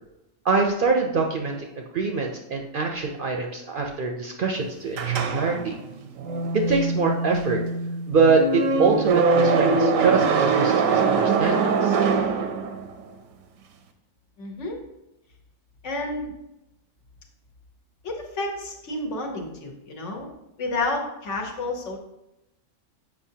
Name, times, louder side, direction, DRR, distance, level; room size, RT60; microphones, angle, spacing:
voice 1, 0.4-5.8 6.5-7.6 8.1-12.0, right 4 dB, 55° right, 2 dB, 0.6 m, -24 dB
sound 1, 4.9-13.0, right 4 dB, 85° right, 1.0 m, -23 dB
voice 2, 14.4-14.8 15.8-16.3 18.0-22.0, left 2 dB, 70° left, 1 dB, 1.3 m, -30 dB
7.1 x 5.3 x 2.7 m, 0.92 s
omnidirectional pair, 1.3 m